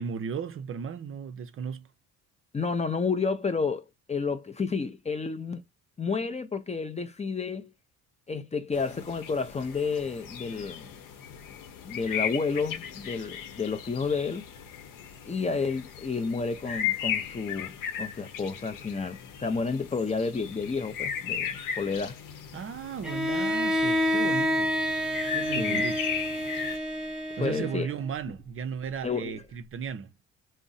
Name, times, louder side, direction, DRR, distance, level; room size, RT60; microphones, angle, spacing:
voice 1, 0.0-1.9 22.5-24.7 25.3-26.0 27.4-30.1, right 7 dB, 40° right, 0.5 m, -35 dB
voice 2, 2.5-5.6 6.0-7.7 8.3-10.9 11.8-14.4 15.3-22.2 25.6-25.9 27.4-27.9 29.0-29.4, left 4 dB, 20° left, 0.5 m, -31 dB
sound 1, 8.7-26.8, left 8 dB, 70° left, 0.8 m, -36 dB
Bowed string instrument, 23.0-28.1, equal, ahead, 0.8 m, -28 dB
2.5 x 2.0 x 3.9 m
supercardioid pair, 80°, 33 cm